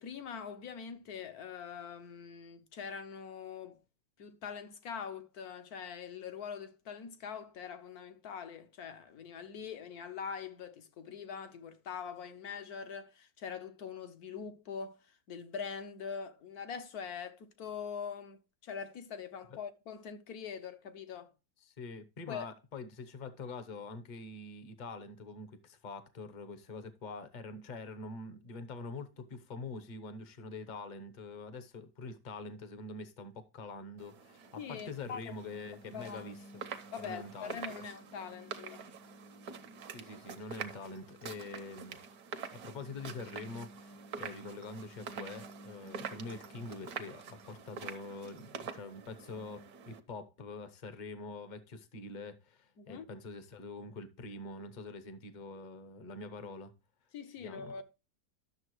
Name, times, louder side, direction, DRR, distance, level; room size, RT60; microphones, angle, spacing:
voice 1, 0.0-3.8 4.2-21.3 22.3-22.5 34.6-35.3 35.9-36.3 36.9-38.8 52.8-53.1 57.1-57.8, left 6 dB, 65° left, 1.4 m, -43 dB
voice 2, 21.6-36.6 37.0-37.8 39.9-42.0 42.5-56.7 57.4-57.8, left 3 dB, 35° left, 0.8 m, -45 dB
sound 1, 34.0-50.0, right 6 dB, 65° right, 1.4 m, -46 dB
12.0 x 6.8 x 3.1 m
omnidirectional pair, 1.8 m